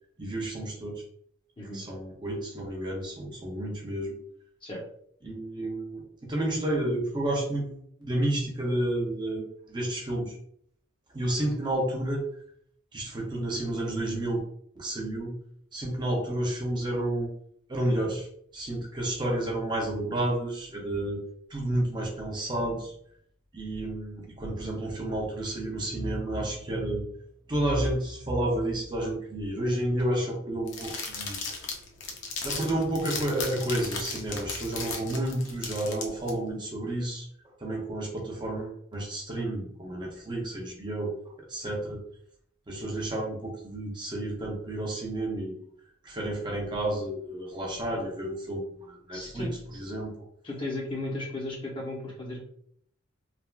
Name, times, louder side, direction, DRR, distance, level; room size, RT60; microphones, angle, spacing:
voice 1, 0.2-1.0 1.7-4.1 5.2-10.4 11.1-12.3 12.9-14.4 14.7-15.4 15.7-17.3 17.7-18.3 18.5-21.2 21.5-22.9 23.5-27.1 27.5-31.4 32.4-37.3 37.6-41.2 41.5-42.0 42.7-45.6 46.0-50.1, right 1 dB, 20° right, -2 dB, 0.5 m, -31 dB
sound 1, 30.7-36.3, left 4 dB, 65° left, 0.6 m, -36 dB
voice 2, 49.1-49.5 50.4-52.5, left 2 dB, 25° left, -1 dB, 0.7 m, -35 dB
3.2 x 2.3 x 2.2 m, 0.65 s
head